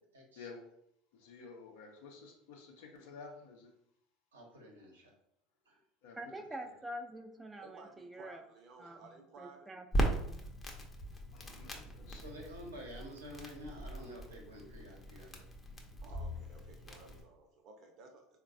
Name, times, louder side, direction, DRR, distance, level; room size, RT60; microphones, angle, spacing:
voice 1, 0.1-0.5 4.3-5.1 5.6-5.8 12.1-15.5, equal, 90° right, -1 dB, 0.8 m, -50 dB
voice 2, 1.1-3.7 6.0-6.2 11.3-12.3, left 4 dB, 70° left, 1 dB, 0.5 m, -52 dB
voice 3, 6.2-8.4 8.8-9.0 9.4-10.4, right 1 dB, 15° right, 4 dB, 0.4 m, -46 dB
voice 4, 7.6-9.7 16.0-18.4, right 3 dB, 50° right, 3 dB, 0.7 m, -56 dB
Crackle, 9.9-17.2, right 1 dB, 25° left, 0.7 m, -39 dB
3.7 x 2.2 x 2.5 m, 0.75 s
hypercardioid pair, 75°, 0 cm